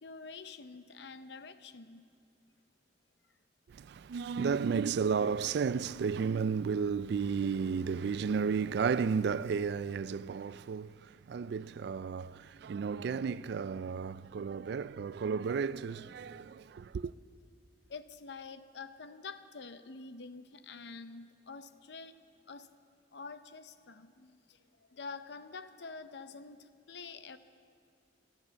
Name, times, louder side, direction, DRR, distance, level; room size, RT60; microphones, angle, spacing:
voice 1, 0.0-2.0 17.9-22.1 22.5-22.7 23.1-24.6 24.9-27.4, left 4 dB, 65° left, 0.7 m, -47 dB
voice 2, 3.7-10.9 11.3-17.1, right 6 dB, 60° right, 0.3 m, -33 dB
17.5 x 12.0 x 6.9 m
head